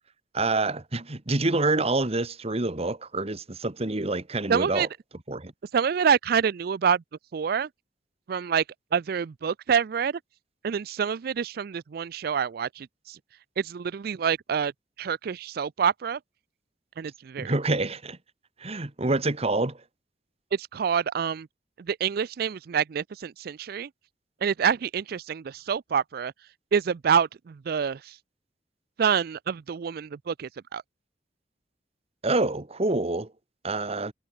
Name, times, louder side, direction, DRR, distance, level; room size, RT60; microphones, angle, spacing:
voice 1, 0.3-4.9 5.3-5.5 17.4-18.2 18.6-19.8 32.2-33.3 33.6-34.1, right 2 dB, 35° right, 1.5 m, -27 dB
voice 2, 4.5-4.9 5.7-7.0 7.3-7.7 8.3-8.6 8.9-10.2 10.6-13.2 13.6-14.7 15.0-16.2 17.0-17.5 20.5-21.5 21.8-23.9 24.4-26.3 26.7-28.2 29.0-30.8, right 7 dB, 60° right, 0.4 m, -27 dB
head